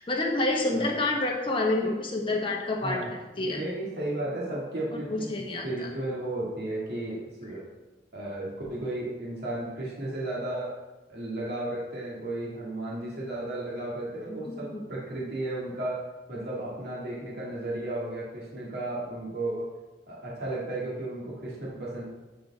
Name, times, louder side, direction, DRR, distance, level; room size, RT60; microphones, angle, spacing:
voice 1, 0.1-3.0 3.4-3.6 5.1-5.9 14.4-14.8, left 2 dB, 30° left, 0 dB, 1.2 m, -28 dB
voice 2, 2.8-3.1 3.5-5.3 5.6-7.6 8.1-10.8 11.1-19.7 20.1-22.0, right 1 dB, 65° right, -6 dB, 2.2 m, -34 dB
8.5 x 5.1 x 4.2 m, 1.1 s
head